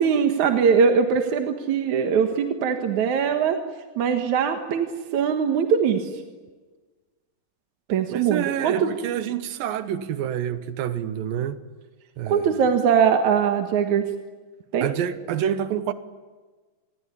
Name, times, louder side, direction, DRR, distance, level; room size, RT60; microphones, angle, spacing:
voice 1, 0.0-3.6 4.0-6.1 7.9-8.9 12.3-14.1 14.7-14.9, right 6 dB, 60° right, 2.7 m, -21 dB
voice 2, 8.1-11.6 12.2-12.6 14.8-15.9, right 9 dB, 85° right, 2.8 m, -27 dB
27.5 x 21.0 x 9.9 m
omnidirectional pair, 3.9 m